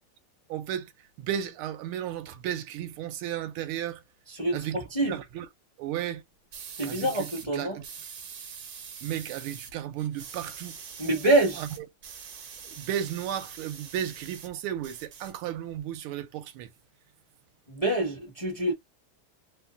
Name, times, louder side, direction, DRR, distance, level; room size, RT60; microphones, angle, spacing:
voice 1, 0.5-0.9 1.2-4.0 4.5-4.8 5.1-5.5 5.8-6.2 6.8-7.8 9.0-10.7 11.6-11.7 12.6-16.7, right 10 dB, 80° right, 1.5 m, -34 dB
voice 2, 4.3-5.2 6.8-7.8 11.0-11.6 17.7-18.7, right 2 dB, 30° left, 0.6 m, -26 dB
sound 1, 6.5-7.5 7.8-9.7 10.0-14.5 14.8-15.8, right 6 dB, 60° right, 1.0 m, -44 dB
3.5 x 2.5 x 2.4 m
omnidirectional pair, 2.4 m